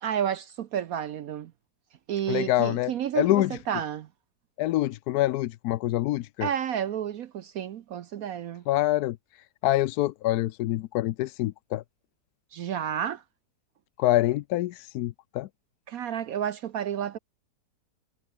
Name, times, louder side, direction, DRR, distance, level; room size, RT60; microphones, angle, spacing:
voice 1, 0.0-1.5 2.1-4.1 6.4-8.6 12.5-13.2 15.9-17.2, right 9 dB, 65° right, 1.1 m, -31 dB
voice 2, 2.3-3.5 4.6-6.5 8.7-9.2 9.6-11.8 14.0-15.5, left 15 dB, 75° left, 1.0 m, -26 dB
omnidirectional pair, 1.8 m